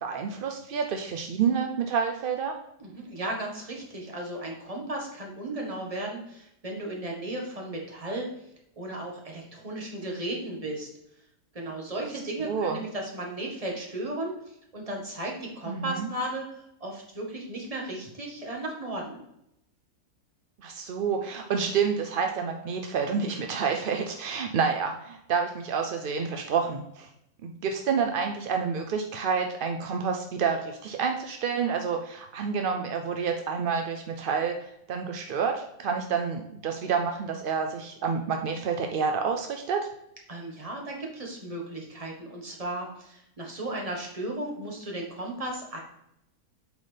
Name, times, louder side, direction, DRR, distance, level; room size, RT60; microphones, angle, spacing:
voice 1, 0.0-2.5 12.4-12.8 15.7-16.1 20.6-27.1 27.4-39.9, right 6 dB, 65° right, 4 dB, 0.5 m, -29 dB
voice 2, 2.8-8.3 8.8-10.9 11.5-19.2 40.3-45.8, right 1 dB, 25° right, -1 dB, 1.4 m, -35 dB
8.0 x 4.2 x 3.3 m, 0.78 s
omnidirectional pair, 1.6 m